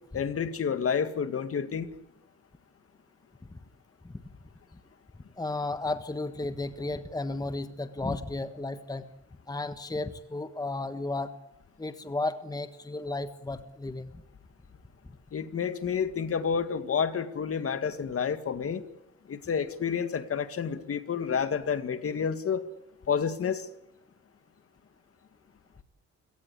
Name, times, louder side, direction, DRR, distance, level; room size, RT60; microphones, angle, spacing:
voice 1, 0.1-1.9 15.3-18.8 19.3-22.7 23.1-23.7, left 7 dB, 50° left, 10 dB, 2.2 m, -29 dB
voice 2, 5.4-9.0 9.5-11.3 11.8-14.2, left 2 dB, 10° left, 10 dB, 1.4 m, -33 dB
29.0 x 18.0 x 8.5 m, 0.92 s
cardioid pair, 90°, 30 cm